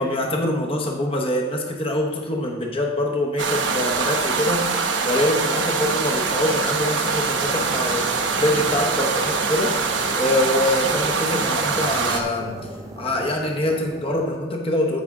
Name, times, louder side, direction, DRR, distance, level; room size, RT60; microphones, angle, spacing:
voice 1, 0.0-9.7 10.2-12.7 13.0-15.0, left 1 dB, 30° left, 0 dB, 1.0 m, -24 dB
sound 1, 3.4-12.2, right 4 dB, 75° right, 0.9 m, -23 dB
sound 2, 5.4-14.4, right 1 dB, 15° right, 0.6 m, -39 dB
14.5 x 4.9 x 3.6 m, 1.2 s
head